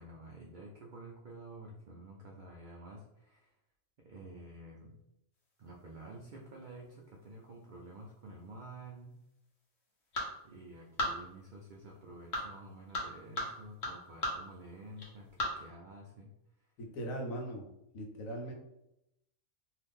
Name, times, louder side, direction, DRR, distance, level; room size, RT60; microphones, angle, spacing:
voice 1, 0.0-3.5 4.0-4.9 5.6-9.2 10.4-16.3, right 2 dB, 80° right, -2 dB, 0.4 m, -50 dB
sound 1, 5.3-15.7, left 1 dB, 55° left, 1.1 m, -42 dB
voice 2, 16.8-17.7 17.9-18.5, right 1 dB, 80° left, 1 dB, 1.1 m, -39 dB
2.7 x 2.4 x 3.5 m, 0.85 s
omnidirectional pair, 1.4 m